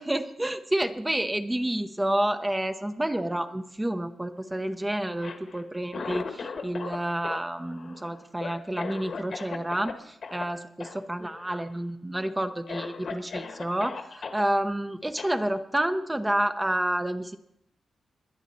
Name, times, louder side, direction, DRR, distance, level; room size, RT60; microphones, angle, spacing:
voice 1, 0.0-17.4, right 1 dB, 10° right, 7 dB, 0.7 m, -29 dB
Cough, 5.1-7.0 7.2-9.9 10.2-10.4 10.8-11.0 11.3-11.8 12.2-12.3 12.7-14.4 15.2-15.3, left 5 dB, 55° left, 1.4 m, -37 dB
21.0 x 10.5 x 4.2 m, 0.77 s
cardioid pair, 100°, 0 cm